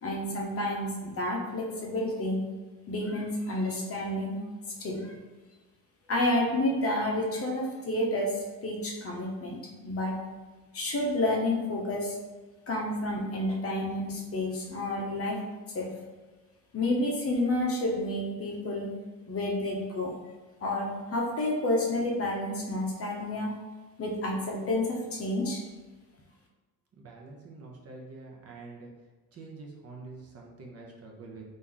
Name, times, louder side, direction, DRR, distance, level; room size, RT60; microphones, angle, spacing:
voice 1, 0.0-2.4 2.9-4.4 4.8-5.1 6.1-8.3 8.6-10.2 10.7-12.1 12.7-15.4 15.7-15.9 16.7-18.9 19.3-20.1 20.6-23.5 24.0-25.6, left 1 dB, 40° left, -1 dB, 0.7 m, -30 dB
voice 2, 27.0-28.9 29.3-31.4, right 3 dB, 40° right, -1 dB, 0.6 m, -46 dB
2.9 x 2.5 x 3.7 m, 1.3 s
cardioid pair, 150°, 36 cm